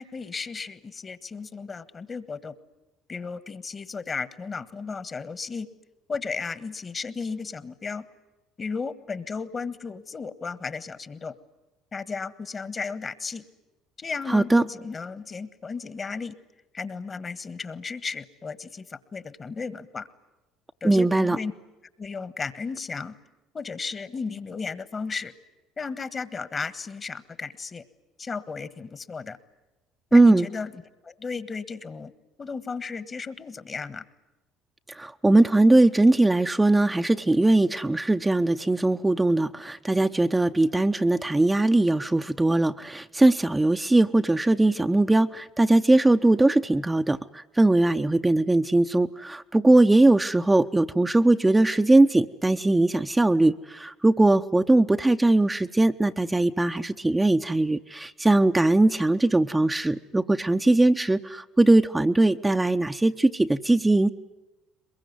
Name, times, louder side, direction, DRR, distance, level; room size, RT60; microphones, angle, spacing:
voice 1, 0.0-2.5 3.1-5.7 6.1-8.0 8.6-11.3 11.9-13.4 14.0-16.3 16.7-20.1 20.8-21.5 22.0-23.1 23.5-25.3 25.8-27.8 28.2-29.4 30.1-30.7 31.0-32.1 32.4-34.0, left 5 dB, 35° left, 15 dB, 1.6 m, -34 dB
voice 2, 14.3-14.6 20.8-21.4 30.1-30.5 34.9-64.1, right 2 dB, 15° right, 6 dB, 0.8 m, -20 dB
22.5 x 22.0 x 9.5 m, 1.1 s
hypercardioid pair, 65°, 0 cm